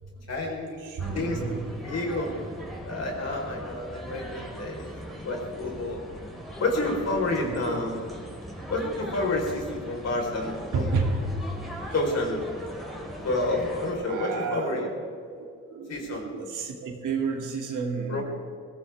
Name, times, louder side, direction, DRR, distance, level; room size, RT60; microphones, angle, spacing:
voice 1, 0.3-0.8 1.1-2.3 2.9-4.8 5.1-6.0 6.6-8.0 8.7-10.9 11.9-12.4 13.2-14.9 15.9-16.3 18.1-18.2, left 2 dB, 55° left, 0 dB, 4.5 m, -29 dB
voice 2, 0.8-1.6 4.0-4.4 7.4-8.0 10.7-11.1 14.0-14.9 15.2-15.5 15.7-18.2, right 4 dB, 85° right, 1 dB, 2.8 m, -31 dB
sound 1, 1.0-13.9, equal, ahead, 4.7 m, -39 dB
21.0 x 17.0 x 3.6 m, 2.3 s
cardioid pair, 95°, 30 cm